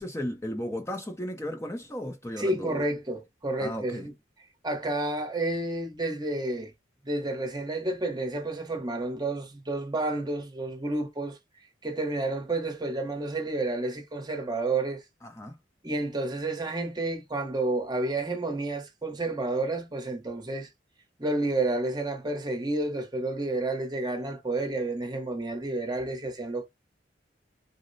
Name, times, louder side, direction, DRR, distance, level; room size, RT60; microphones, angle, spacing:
voice 1, 0.0-2.8 3.6-4.1 15.2-15.6, equal, 15° left, 0.5 m, -35 dB
voice 2, 2.4-4.1 4.6-6.7 7.0-11.4 11.8-15.0 15.8-20.7 21.2-26.7, right 2 dB, 20° right, 0.8 m, -30 dB
3.9 x 2.1 x 2.6 m
head